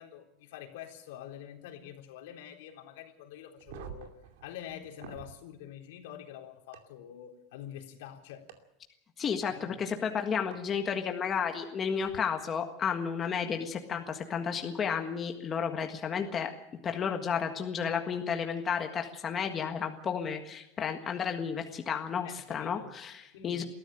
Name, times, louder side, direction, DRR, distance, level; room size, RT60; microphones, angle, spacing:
voice 1, 0.0-4.1 4.4-8.4 9.4-9.8 17.3-17.4 22.2-22.9 23.3-23.6, left 10 dB, 80° left, 2 dB, 4.0 m, -46 dB
sound 1, 3.6-5.3 6.7-6.8 8.5-8.6 10.5-10.6 12.0-12.2, right 9 dB, 85° right, 2.6 m, -47 dB
voice 2, 9.2-16.5 16.8-23.6, left 7 dB, 25° left, 4 dB, 1.6 m, -32 dB
21.0 x 14.5 x 9.0 m, 0.86 s
supercardioid pair, 160°, 0 cm